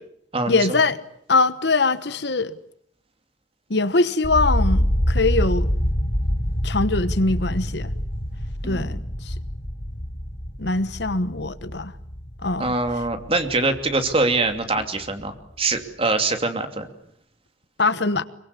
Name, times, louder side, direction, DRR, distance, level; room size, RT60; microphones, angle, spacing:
voice 1, 0.5-1.0 1.3-2.6 3.7-5.7 6.6-7.9 8.6-9.3 10.6-11.9 12.4-12.8 17.8-18.2, left 3 dB, 60° left, 1.2 m, -22 dB
sound 1, 4.2-14.2 14.5-15.2, equal, 35° left, 4.7 m, -26 dB
voice 2, 8.6-9.0 12.6-16.9, right 3 dB, 30° right, 2.8 m, -24 dB
25.5 x 23.5 x 8.4 m
head